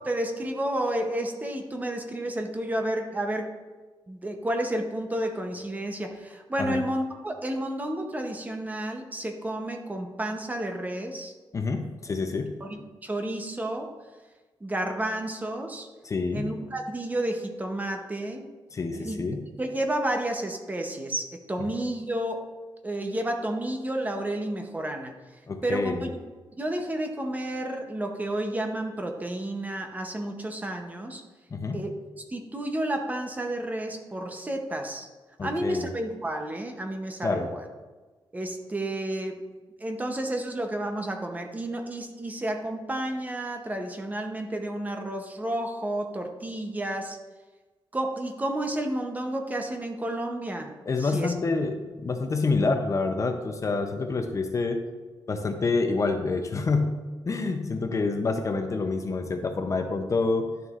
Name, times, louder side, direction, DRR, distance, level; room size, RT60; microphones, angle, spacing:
voice 1, 0.0-3.6 4.1-11.3 12.6-13.9 14.6-15.9 16.3-18.5 18.9-19.2 19.6-22.4 22.8-25.1 25.6-26.1 26.6-31.2 31.7-32.0 32.3-35.1 35.4-37.7 38.3-39.4 39.8-47.2 47.9-50.7 51.0-51.3 57.6-57.7, right 1 dB, 20° right, 4 dB, 0.8 m, -31 dB
voice 2, 11.5-12.5 16.0-16.5 18.7-19.4 25.5-26.1 31.5-31.8 35.4-35.9 37.2-37.5 50.9-54.8 55.3-57.0 57.3-60.5, left 3 dB, 35° left, 5 dB, 0.6 m, -27 dB
11.0 x 6.7 x 2.5 m, 1.3 s
wide cardioid pair, 145°, 9 cm